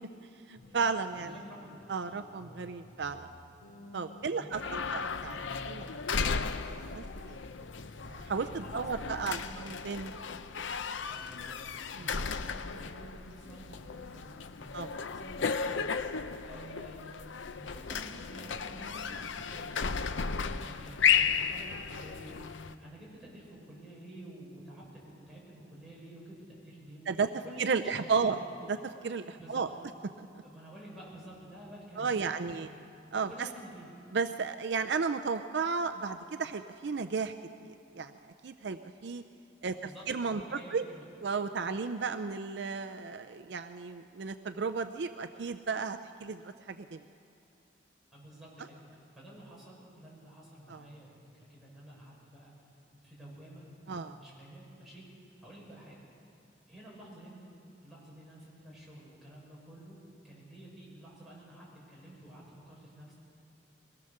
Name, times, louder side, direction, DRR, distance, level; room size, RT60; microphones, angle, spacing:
voice 1, 0.5-1.3 1.9-3.3 3.9-5.4 5.7-5.8 6.3-6.5 6.8-7.4 8.1-10.1 12.0-12.1 14.7-14.9 27.1-27.3 27.6-28.4 28.7-29.7 32.0-32.7 33.1-33.3 34.1-37.3 37.6-38.1 38.4-39.2 39.6-39.8 40.1-40.8 41.2-47.0 50.7-50.8 53.9-54.2, right 5 dB, 60° right, 9 dB, 0.5 m, -33 dB
sound 1, 0.6-10.0, left 1 dB, 50° left, 3.8 m, -53 dB
voice 2, 1.2-1.7 4.3-5.5 8.5-9.6 11.1-14.7 15.1-17.2 17.5-19.8 20.1-27.1 27.4-28.3 29.3-29.6 30.4-32.7 33.2-33.9 39.7-41.0 48.1-52.5 53.0-56.0 56.2-56.3 56.7-57.5 57.8-60.0 60.2-63.1, right 1 dB, ahead, -7 dB, 5.9 m, -50 dB
sound 2, 4.5-22.7, left 6 dB, 75° left, 0.6 m, -34 dB
22.5 x 17.5 x 6.6 m, 2.6 s
head